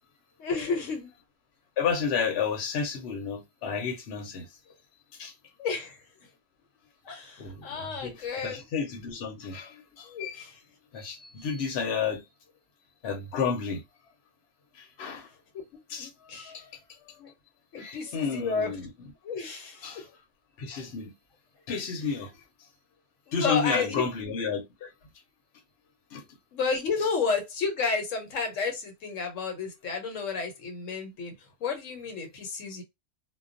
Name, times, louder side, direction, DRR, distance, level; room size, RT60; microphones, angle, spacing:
voice 1, 0.4-1.1 5.6-6.0 7.0-8.6 10.0-10.6 15.5-15.6 15.9-16.5 17.2-17.3 17.7-18.7 19.2-20.1 23.3-24.0 26.5-32.8, left 4 dB, 80° left, 1.1 m, -31 dB
voice 2, 1.8-4.5 5.2-5.3 7.4-10.5 10.9-12.2 13.0-13.8 14.7-15.3 15.9-17.2 17.8-18.9 19.8-20.1 20.6-21.1 21.7-22.4 23.3-24.9 26.1-26.2, left 6 dB, 60° left, 0.9 m, -32 dB
2.3 x 2.2 x 2.5 m
omnidirectional pair, 1.3 m